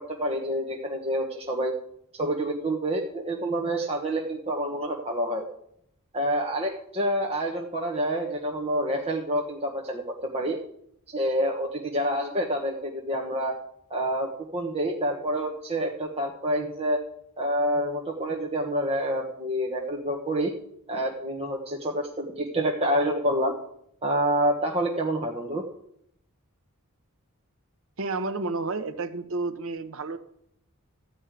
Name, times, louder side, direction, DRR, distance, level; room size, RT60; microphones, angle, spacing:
voice 1, 0.0-1.7 2.1-5.5 6.1-10.6 11.1-13.6 13.9-17.0 17.4-20.5 20.9-23.6 24.0-25.6, right 1 dB, 30° right, -1 dB, 1.2 m, -27 dB
voice 2, 28.0-30.2, right 3 dB, 65° right, 10 dB, 1.0 m, -31 dB
13.5 x 5.4 x 9.1 m, 0.72 s
head